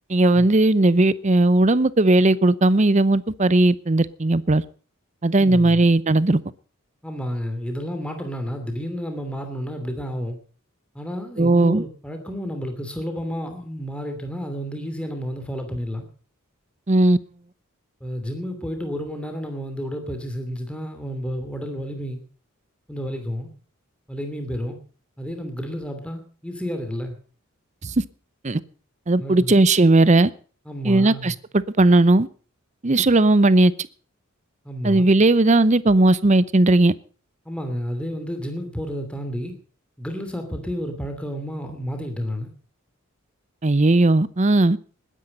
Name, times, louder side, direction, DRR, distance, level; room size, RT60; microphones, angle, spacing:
voice 1, 0.1-4.6 5.2-6.4 11.4-11.8 16.9-17.2 27.8-28.0 28.4-28.6 29.1-30.3 30.8-32.3 32.8-33.7 34.8-36.9 43.6-44.8, right 2 dB, 35° right, 18 dB, 0.7 m, -17 dB
voice 2, 5.4-5.8 7.0-10.4 10.9-16.1 18.0-22.2 22.9-23.5 24.1-24.8 25.2-27.2 29.2-29.5 30.7-31.3 34.6-35.1 37.4-39.5 40.0-42.5, equal, 5° left, 5 dB, 2.8 m, -31 dB
20.0 x 10.0 x 5.4 m, 0.40 s
head